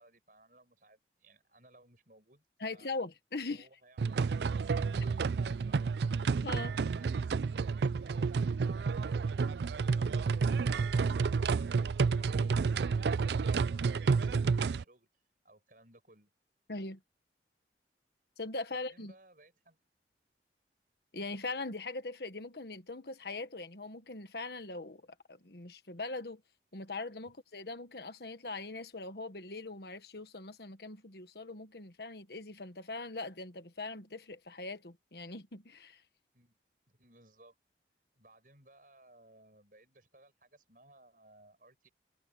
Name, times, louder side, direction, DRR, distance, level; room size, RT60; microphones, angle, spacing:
voice 1, 0.0-3.0 3.5-6.0 6.7-9.2 9.7-15.1 15.4-16.3 18.7-19.8 36.3-36.6 36.9-37.6 38.1-41.9, right 2 dB, 50° right, 7.8 m, -61 dB
voice 2, 2.6-3.7 6.4-6.8 16.7-17.0 18.4-19.1 21.1-25.0 25.3-26.4 26.7-36.0, left 3 dB, 65° left, 1.4 m, -41 dB
sound 1, 4.0-14.8, right 5 dB, 70° right, 0.4 m, -30 dB
head